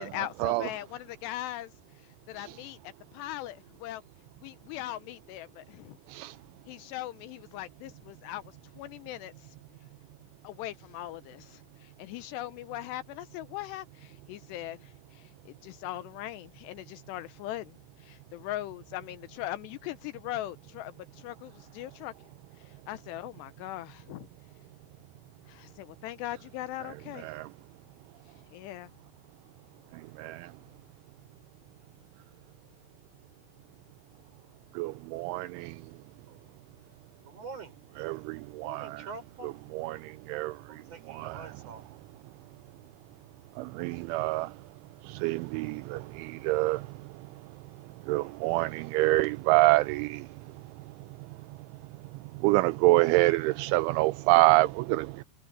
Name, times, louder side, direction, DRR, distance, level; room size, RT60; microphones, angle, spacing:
voice 1, 0.0-1.7 2.3-2.8 3.1-4.0 4.4-6.0 6.7-9.5 10.4-22.1 22.6-24.3 25.5-27.3 28.5-28.9, left 14 dB, 85° left, 2.4 m, -40 dB
voice 2, 29.9-30.5 34.7-35.8 38.0-38.9 39.7-40.8 41.1-41.4 43.6-44.6 45.0-47.2 48.1-50.3 52.3-55.2, right 20 dB, 85° right, 2.9 m, -26 dB
voice 3, 36.3-36.7 37.2-37.8 38.6-39.5 40.7-41.9, right 4 dB, 30° right, 6.8 m, -45 dB
omnidirectional pair, 5.6 m